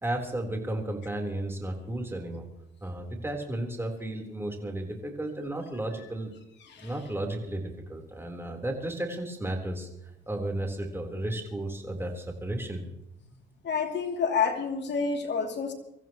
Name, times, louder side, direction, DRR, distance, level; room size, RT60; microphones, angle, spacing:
voice 1, 0.0-2.5 2.8-6.3 6.8-12.8, right 1 dB, 10° right, 2 dB, 3.9 m, -33 dB
voice 2, 13.6-15.7, left 5 dB, 60° left, 2 dB, 2.9 m, -28 dB
25.0 x 14.5 x 3.1 m, 0.84 s
cardioid pair, 90°, 20 cm